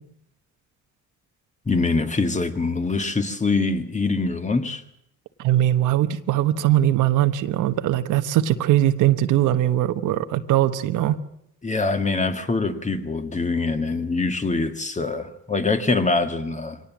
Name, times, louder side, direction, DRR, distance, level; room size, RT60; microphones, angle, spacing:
voice 1, 1.6-4.8 11.6-16.8, left 3 dB, 25° left, 1.8 m, -24 dB
voice 2, 5.4-11.2, right 13 dB, 90° right, 1.2 m, -20 dB
23.5 x 18.5 x 7.4 m
cardioid pair, 90°, 30 cm